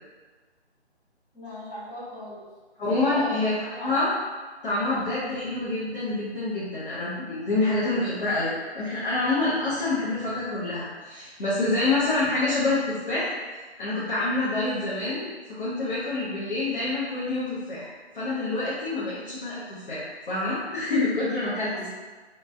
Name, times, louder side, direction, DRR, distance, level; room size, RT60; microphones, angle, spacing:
voice 1, 1.3-2.5 2.9-3.4 3.7-4.0 21.5-21.9, left 1 dB, 5° left, -17 dB, 0.7 m, -38 dB
voice 2, 2.8-4.1 4.6-13.4 13.8-15.2 15.5-21.9, left 2 dB, 50° left, -10 dB, 0.9 m, -27 dB
3.0 x 2.2 x 2.6 m, 1.4 s
figure-of-eight pair, 150°, 33 cm